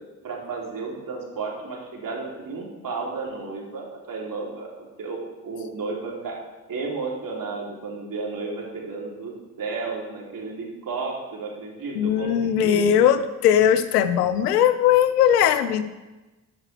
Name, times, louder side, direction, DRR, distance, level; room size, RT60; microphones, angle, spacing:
voice 1, 0.2-6.4 6.7-12.9, right 4 dB, 45° right, -2 dB, 3.2 m, -33 dB
voice 2, 11.9-15.8, left 9 dB, 80° left, 12 dB, 0.7 m, -19 dB
12.0 x 12.0 x 3.4 m, 1.1 s
figure-of-eight pair, 40°, 46 cm